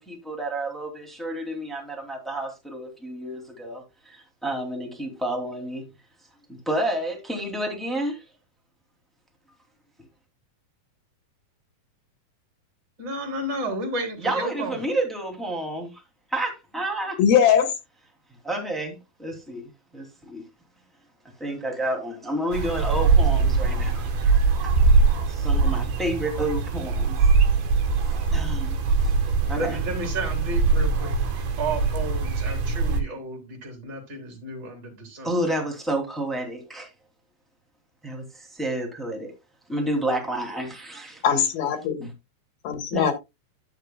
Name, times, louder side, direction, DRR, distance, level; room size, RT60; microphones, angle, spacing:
voice 1, 0.0-5.8 6.5-8.2 14.2-16.0 16.3-17.2 18.4-20.4 21.4-24.1 25.3-27.2 28.3-28.8 29.5-29.8 35.2-36.9 38.0-39.3 39.7-41.2 42.9-43.1, right 1 dB, ahead, 1.6 m, -30 dB
voice 2, 13.0-14.9 29.6-31.2 31.6-35.4, right 1 dB, 30° right, 3.6 m, -32 dB
voice 3, 17.2-17.7 41.2-42.1 42.6-43.1, left 8 dB, 75° left, 3.5 m, -20 dB
sound 1, 22.5-33.0, right 4 dB, 75° right, 3.2 m, -22 dB
12.0 x 8.0 x 2.2 m
omnidirectional pair, 4.4 m